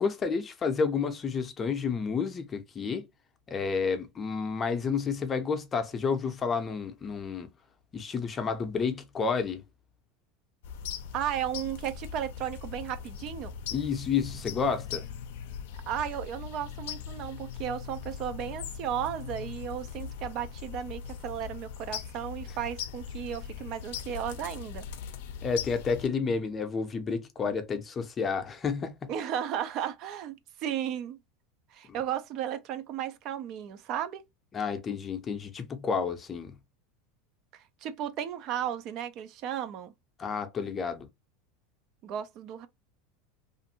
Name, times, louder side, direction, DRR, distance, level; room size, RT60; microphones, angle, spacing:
voice 1, 0.0-3.0 3.5-7.5 7.9-9.6 13.7-15.0 25.4-29.1 31.9-32.0 34.5-36.6 40.2-41.1, left 5 dB, 25° left, 0.6 m, -30 dB
sound 1, 10.6-26.1, left 7 dB, 75° left, 0.5 m, -40 dB
voice 2, 11.1-13.5 15.9-24.9 29.1-31.2 31.7-34.2 37.5-39.9 42.0-42.7, right 10 dB, 50° right, 0.4 m, -34 dB
2.5 x 2.5 x 2.8 m
hypercardioid pair, 105°, 0 cm